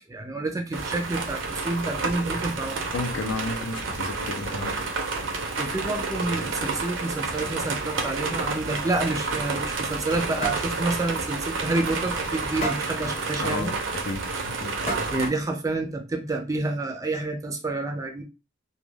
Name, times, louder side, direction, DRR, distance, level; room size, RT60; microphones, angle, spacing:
voice 1, 0.1-2.8 5.6-13.7 15.1-18.2, right 2 dB, 20° right, 3 dB, 0.4 m, -29 dB
sound 1, 0.7-15.3, right 3 dB, 75° right, 0.6 m, -30 dB
voice 2, 2.9-4.7 13.4-13.7 14.1-14.7, left 2 dB, 75° left, 5 dB, 0.5 m, -32 dB
sound 2, 9.6-10.2 10.4-10.7 11.2-11.3 11.7-11.8 12.6-13.0 14.1-14.2 14.9-15.3, right 2 dB, 35° left, 0.8 m, -30 dB
2.3 x 2.2 x 3.2 m, 0.29 s
head